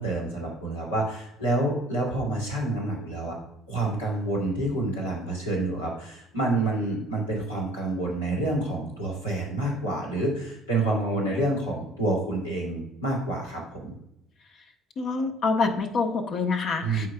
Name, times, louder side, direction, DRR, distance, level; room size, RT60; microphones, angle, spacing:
voice 1, 0.0-3.3 3.7-13.9 16.8-17.1, right 2 dB, 90° left, -4 dB, 2.7 m, -28 dB
voice 2, 15.0-17.1, left 4 dB, 55° left, 4 dB, 1.3 m, -26 dB
13.5 x 4.7 x 2.4 m, 0.80 s
hypercardioid pair, 55°, 0 cm